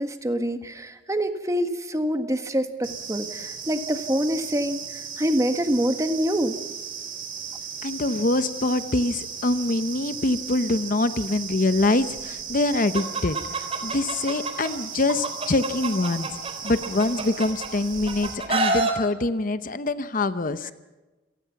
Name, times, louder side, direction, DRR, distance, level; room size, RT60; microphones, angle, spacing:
voice 1, 0.0-6.6 20.6-20.7, equal, 15° right, 7 dB, 1.6 m, -26 dB
sound 1, 2.8-18.3, right 7 dB, 50° right, 4.1 m, -36 dB
voice 2, 7.8-13.4 13.8-20.7, left 2 dB, 45° left, 12 dB, 0.8 m, -24 dB
Chicken rooster, 12.9-14.7 15.1-17.7 18.1-18.9, right 3 dB, 35° right, 3.7 m, -27 dB
28.0 x 18.5 x 5.9 m, 1.2 s
head